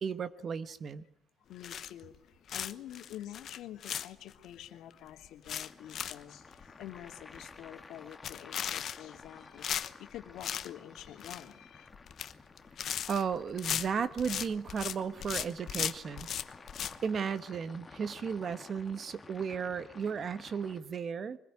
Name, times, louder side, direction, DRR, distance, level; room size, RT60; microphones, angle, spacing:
voice 1, 0.0-1.0 13.1-16.3 17.0-21.4, right 6 dB, 40° right, 13 dB, 1.3 m, -34 dB
voice 2, 1.5-11.9, left 12 dB, 80° left, 6 dB, 2.6 m, -47 dB
sound 1, 1.6-2.2 2.5-4.5 4.9-5.0 5.2-6.2 6.5-6.7 7.0-7.1 7.3-7.7 8.1-9.3 9.6-10.7 11.0-11.5 11.9-12.3 12.6-15.0 15.2-17.0, left 9 dB, 50° left, 1.1 m, -37 dB
sound 2, 5.7-20.8, left 3 dB, 20° left, 2.1 m, -53 dB
24.0 x 20.5 x 9.9 m, 0.70 s
cardioid pair, 150°, 0 cm